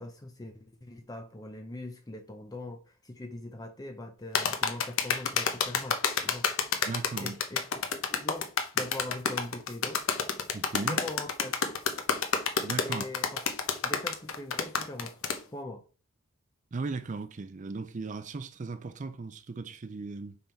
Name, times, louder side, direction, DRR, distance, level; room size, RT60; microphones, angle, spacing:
voice 1, 0.0-6.5 7.2-7.7 7.9-10.0 10.8-11.6 12.8-13.5 13.8-15.2 15.5-15.8, left 2 dB, 15° left, 0.5 m, -41 dB
sound 1, 4.3-15.4, left 6 dB, 70° left, 1.0 m, -29 dB
voice 2, 6.8-7.4 10.5-11.0 12.6-13.0 16.7-20.4, right 3 dB, 35° right, 0.4 m, -37 dB
5.6 x 5.5 x 4.4 m
head